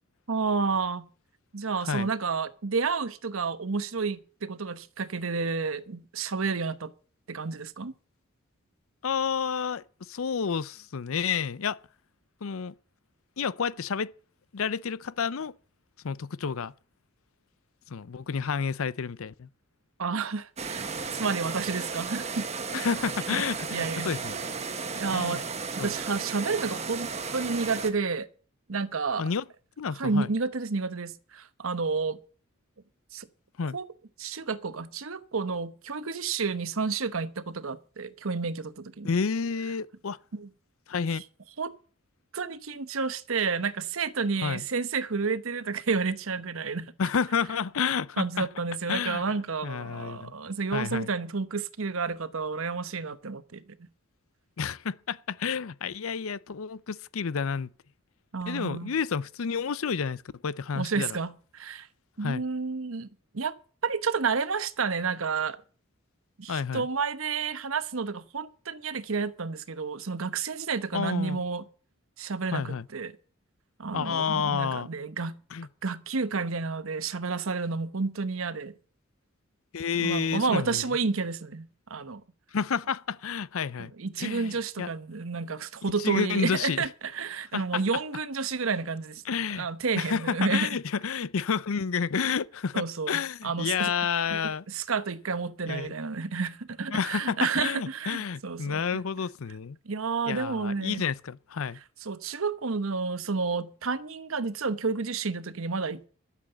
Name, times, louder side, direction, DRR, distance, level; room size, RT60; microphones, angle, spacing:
voice 1, 0.3-1.1 1.5-6.9 7.3-7.9 20.0-20.9 21.1-22.5 22.7-22.8 23.3-23.4 23.7-24.1 24.9-25.5 25.8-28.3 28.7-29.3 30.0-32.2 33.1-33.3 33.7-33.9 34.2-39.1 40.3-40.5 41.6-41.7 42.3-46.9 48.2-53.8 58.3-59.0 60.7-61.9 62.2-63.1 63.3-63.5 63.8-65.6 66.4-71.6 72.2-73.2 73.8-75.4 75.8-78.8 80.0-82.2 83.8-89.2 89.5-90.7 92.7-93.9 94.3-98.8 99.8-101.0 102.0-106.1, right 4 dB, 75° right, 0.9 m, -30 dB
voice 2, 9.0-11.8 12.4-12.7 13.4-14.1 14.5-15.5 16.0-16.7 17.9-19.5 22.7-24.3 25.1-25.4 25.8-25.9 29.2-29.4 29.8-30.3 33.6-33.8 39.0-40.2 40.9-41.2 44.4-44.6 47.0-48.5 48.9-49.2 49.6-50.3 50.7-51.1 54.6-57.7 58.5-61.2 62.2-62.4 66.5-66.9 70.9-71.4 72.5-72.9 73.9-74.9 75.5-75.7 79.7-80.8 82.5-83.9 84.2-84.9 86.0-86.9 87.5-87.6 89.3-89.7 90.0-94.6 95.7-95.9 96.9-99.8 100.3-101.8, left 6 dB, 80° left, 0.6 m, -30 dB
sound 1, 20.6-27.9, right 4 dB, 30° right, 1.3 m, -34 dB
13.0 x 7.4 x 7.7 m
head